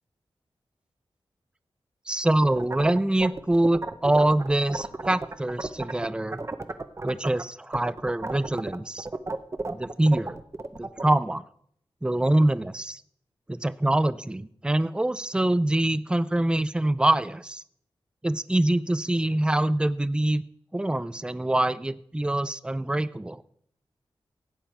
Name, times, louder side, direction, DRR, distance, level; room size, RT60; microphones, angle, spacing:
voice 1, 2.1-6.4 7.0-9.1 9.7-10.4 10.8-11.4 12.0-13.0 13.5-17.6 18.2-20.4 20.7-23.4, right 1 dB, 10° right, 15 dB, 0.5 m, -24 dB
sound 1, 2.4-6.1 6.3-7.4 7.7-11.1, right 2 dB, 30° right, 0.8 m, -32 dB
16.5 x 9.0 x 4.5 m, 0.66 s
wide cardioid pair, 120°, 10 cm